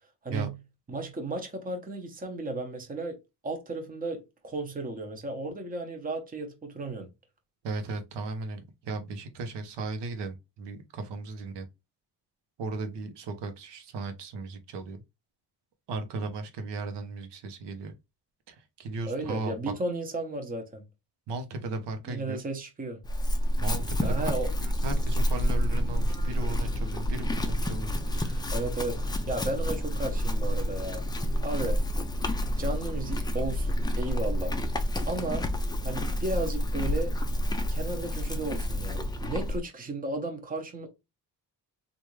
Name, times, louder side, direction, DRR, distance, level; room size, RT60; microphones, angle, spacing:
voice 1, 0.2-0.6 0.9-3.2 3.4-7.1 19.1-20.8 22.1-23.0 24.0-24.5 28.5-31.0 31.4-31.8 32.5-34.5 35.0-35.5 35.8-37.1 37.7-40.9, right 2 dB, 20° right, 0.8 m, -34 dB
voice 2, 7.6-11.6 12.6-15.0 15.9-17.9 18.5-19.7 21.3-22.4 23.6-24.2 24.4-28.5, right 3 dB, 90° right, 0.9 m, -36 dB
Chewing mastication / Livestock farm animals working animals, 23.0-39.6, equal, 10° left, 0.4 m, -29 dB
3.4 x 2.6 x 3.1 m
cardioid pair, 135°, 40 cm